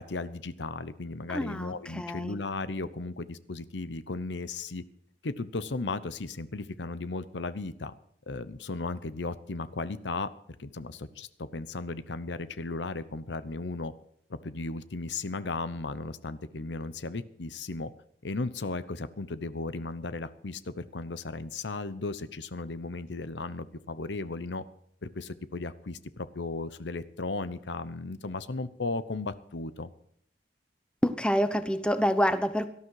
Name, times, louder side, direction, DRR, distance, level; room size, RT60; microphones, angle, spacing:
voice 1, 0.0-4.8 5.2-7.9 8.3-10.3 10.6-13.9 14.3-17.9 18.2-24.6 25.0-29.9, left 3 dB, 75° left, 14 dB, 0.9 m, -35 dB
voice 2, 1.3-2.4 31.0-32.7, equal, 5° left, 10 dB, 0.9 m, -27 dB
18.0 x 12.5 x 4.8 m, 0.69 s
head